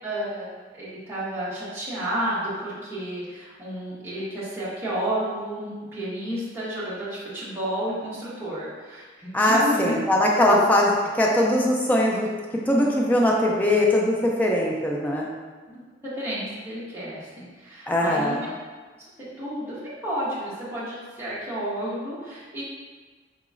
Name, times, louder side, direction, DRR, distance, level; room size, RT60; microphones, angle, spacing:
voice 1, 0.0-10.0 10.4-10.6 15.7-18.5 19.0-19.1 19.4-22.6, right 1 dB, 15° right, -10 dB, 0.9 m, -31 dB
voice 2, 9.3-12.3 12.7-15.3 17.9-18.4, left 1 dB, 10° left, -2 dB, 0.4 m, -21 dB
3.9 x 2.9 x 2.4 m, 1.4 s
head